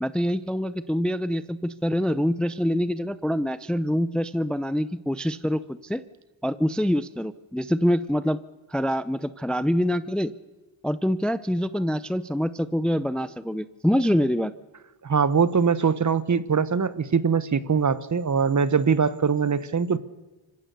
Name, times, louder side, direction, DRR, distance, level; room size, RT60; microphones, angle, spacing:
voice 1, 0.0-6.0 6.4-8.4 8.7-10.3 10.8-14.5, equal, ahead, 15 dB, 0.6 m, -25 dB
voice 2, 15.0-20.0, right 6 dB, 35° right, 16 dB, 1.1 m, -22 dB
25.5 x 15.5 x 6.8 m, 1.2 s
cardioid pair, 70°, 49 cm